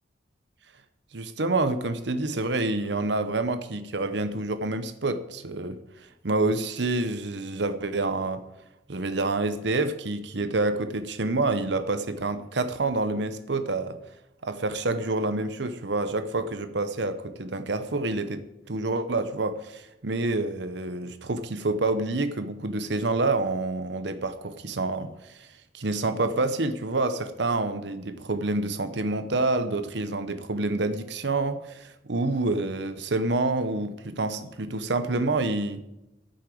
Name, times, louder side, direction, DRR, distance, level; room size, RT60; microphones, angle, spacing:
voice 1, 1.1-5.8 6.2-8.4 8.9-14.0 14.4-18.4 18.7-25.5 25.7-35.8, right 2 dB, 70° right, 0.9 m, -28 dB
9.6 x 8.8 x 7.7 m
head